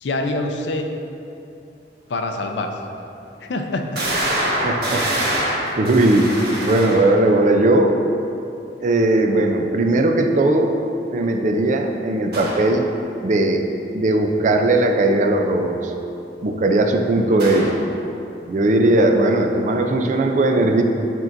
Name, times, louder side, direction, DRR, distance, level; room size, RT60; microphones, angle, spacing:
voice 1, 0.0-0.9 2.1-2.8 3.4-4.0 17.3-17.4, left 2 dB, 85° left, 4 dB, 0.5 m, -25 dB
sound 1, 2.3-2.4 3.0-3.1 4.0-7.4 12.3-12.7 17.4-17.9, right 1 dB, 60° right, 1.2 m, -25 dB
voice 2, 4.6-5.0 5.8-6.3 6.6-8.0 8.8-10.8 11.1-12.9 13.2-13.6 13.9-15.9 16.4-17.8 18.5-20.8, right 2 dB, 45° right, 4 dB, 0.4 m, -18 dB
8.2 x 4.5 x 2.6 m, 2.8 s
head